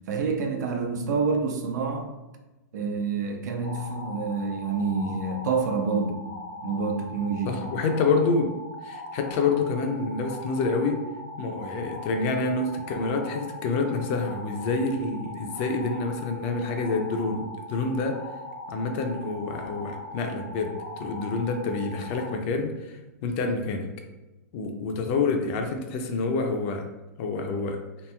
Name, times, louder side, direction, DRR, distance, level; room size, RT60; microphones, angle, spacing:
voice 1, 0.1-2.1 2.7-6.2 6.6-7.5, right 4 dB, 70° right, 0.5 m, -27 dB
sound 1, 3.6-22.3, left 1 dB, 65° left, 0.7 m, -40 dB
voice 2, 7.4-8.5 8.8-11.0 11.4-18.2 18.7-20.7 21.0-23.9 24.5-26.9 27.2-27.8, left 4 dB, 40° left, 0.4 m, -27 dB
2.9 x 2.6 x 2.2 m
hypercardioid pair, 140°, 10 cm